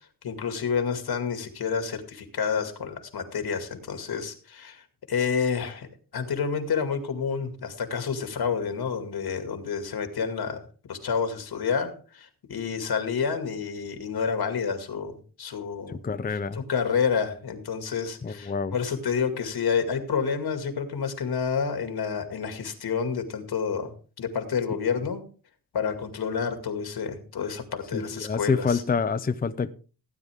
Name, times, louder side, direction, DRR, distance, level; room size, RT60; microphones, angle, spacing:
voice 1, 0.2-5.9 6.1-16.0 16.5-23.9 24.2-25.2 25.7-28.8, left 6 dB, 85° left, 2.2 m, -29 dB
voice 2, 15.9-16.6 18.2-18.7 27.9-29.7, left 5 dB, 25° left, 0.6 m, -27 dB
16.5 x 9.6 x 3.6 m
wide cardioid pair, 125°, 37 cm